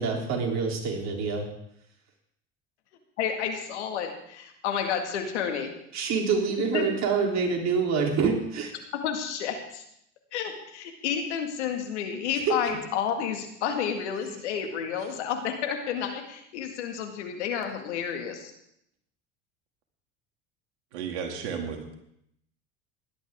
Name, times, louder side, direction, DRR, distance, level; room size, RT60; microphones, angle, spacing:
voice 1, 0.0-1.5 5.9-8.7 12.4-12.5, right 5 dB, 50° right, 1 dB, 3.5 m, -26 dB
voice 2, 3.2-5.7 6.7-6.9 9.0-9.8 10.3-18.5, left 8 dB, 80° left, 4 dB, 2.1 m, -30 dB
voice 3, 20.9-21.9, right 6 dB, 80° right, 3 dB, 2.5 m, -33 dB
17.0 x 11.5 x 3.7 m, 0.75 s
hypercardioid pair, 75°, 34 cm